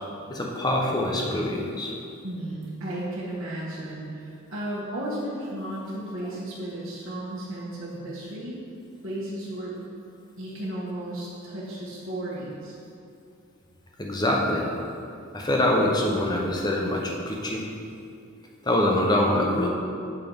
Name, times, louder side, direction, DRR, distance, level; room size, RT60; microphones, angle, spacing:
voice 1, 0.3-1.9 14.0-14.7 15.3-17.6 18.6-19.7, left 1 dB, 20° left, -1 dB, 0.8 m, -24 dB
voice 2, 2.2-8.6 9.0-9.9 10.4-12.7, right 1 dB, 60° right, -7 dB, 1.3 m, -34 dB
7.0 x 4.6 x 5.3 m, 2.5 s
head